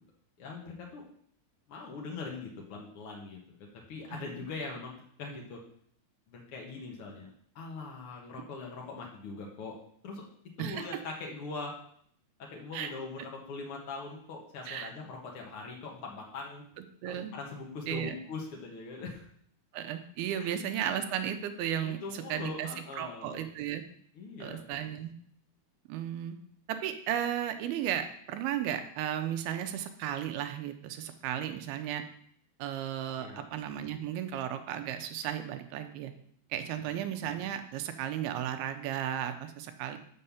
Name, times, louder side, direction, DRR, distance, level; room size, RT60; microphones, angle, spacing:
voice 1, 0.4-1.0 1.7-4.9 5.2-5.6 6.3-7.3 7.5-9.8 10.0-10.2 10.6-11.7 12.4-16.6 17.0-19.3 20.4-20.6 21.8-23.4 24.1-24.6 33.2-33.5 36.9-37.0, left 3 dB, 75° left, -1 dB, 1.2 m, -42 dB
voice 2, 17.0-17.3 17.9-18.2 19.7-22.7 23.0-23.8 24.4-25.1 25.9-26.4 26.7-32.0 32.6-36.1 36.5-40.0, right 10 dB, 90° right, 8 dB, 2.6 m, -34 dB
6.5 x 5.5 x 7.1 m, 0.64 s
omnidirectional pair, 4.5 m